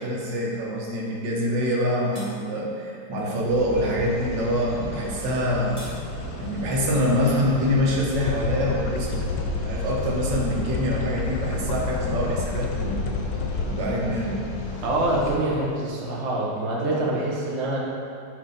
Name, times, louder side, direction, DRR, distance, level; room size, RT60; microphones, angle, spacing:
voice 1, 0.0-5.8 6.4-9.2 9.6-13.1 13.7-14.5, equal, 80° right, -3 dB, 1.6 m, -25 dB
sound 1, 1.6-1.8 2.1-2.3 5.3-6.0, equal, 25° right, 0.9 m, -43 dB
sound 2, 3.5-15.4, left 1 dB, 45° left, 1.0 m, -35 dB
sound 3, 8.3-13.7, left 4 dB, 70° left, 1.1 m, -29 dB
voice 2, 14.8-17.8, right 1 dB, 45° right, -4 dB, 1.0 m, -25 dB
8.8 x 3.3 x 3.8 m, 2.6 s
omnidirectional pair, 2.0 m